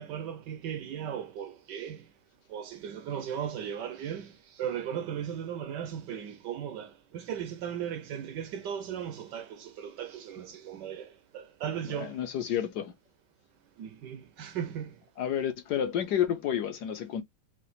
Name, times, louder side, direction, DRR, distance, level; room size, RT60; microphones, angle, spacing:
voice 1, 0.0-2.1 2.5-12.2 13.8-14.9, right 9 dB, 75° right, 1.0 m, -37 dB
voice 2, 11.9-12.9 15.2-17.2, left 9 dB, 65° left, 1.1 m, -30 dB
5.8 x 2.3 x 3.1 m
omnidirectional pair, 2.2 m